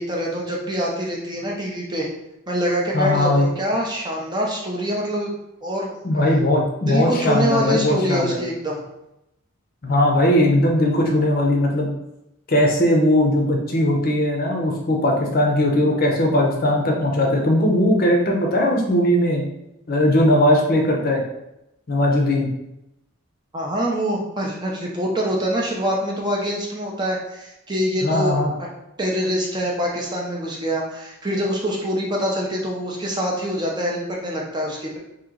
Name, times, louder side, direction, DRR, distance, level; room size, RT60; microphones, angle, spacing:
voice 1, 0.0-2.1 2.5-5.3 5.6-5.9 6.9-8.8 23.5-28.7 29.0-35.0, equal, 20° right, -2 dB, 0.5 m, -25 dB
voice 2, 2.9-3.5 6.0-8.4 9.8-11.9 12.5-19.4 19.9-21.2 21.9-22.5 28.0-28.5, left 1 dB, 45° left, 0 dB, 0.6 m, -19 dB
2.9 x 2.8 x 3.7 m, 0.86 s
head